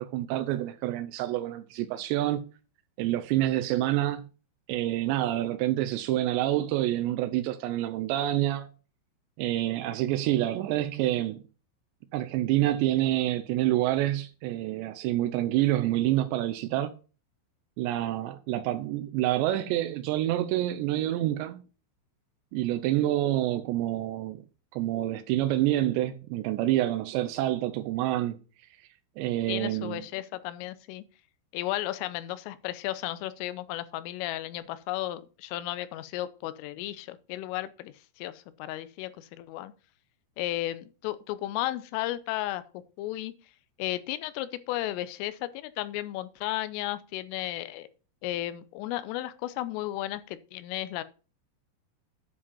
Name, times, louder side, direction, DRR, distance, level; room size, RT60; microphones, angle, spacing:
voice 1, 0.0-2.4 3.0-4.2 4.7-8.7 9.4-11.4 12.1-16.9 17.8-21.6 22.5-24.4 24.7-28.4 29.2-30.0, right 14 dB, 90° right, 2.5 m, -27 dB
voice 2, 29.5-31.0 31.5-39.7 40.4-42.6 43.0-43.3 43.8-47.9 48.2-51.0, left 15 dB, 90° left, 3.3 m, -34 dB
10.0 x 5.1 x 5.4 m
omnidirectional pair, 5.8 m